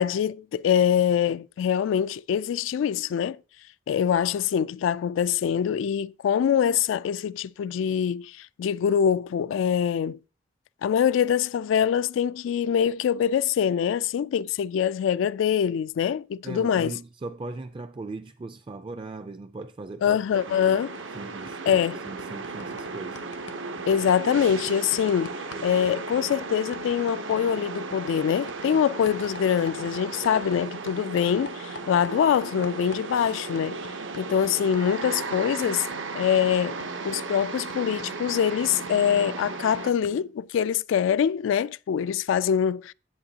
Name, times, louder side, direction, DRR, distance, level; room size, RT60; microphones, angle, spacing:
voice 1, 0.0-3.4 3.9-10.2 10.8-17.0 20.0-20.9 21.7-22.0 23.9-25.4 25.6-33.8 34.2-35.9 36.1-36.8 37.0-42.9, left 8 dB, 85° left, 0.3 m, -24 dB
voice 2, 16.4-20.2 20.5-23.2, right 3 dB, 25° right, 0.4 m, -39 dB
sound 1, 20.3-39.9, right 4 dB, 85° right, 0.9 m, -35 dB
sound 2, 21.0-21.2 21.5-30.6 30.9-40.4, left 3 dB, 65° left, 0.7 m, -48 dB
10.5 x 8.3 x 2.8 m
head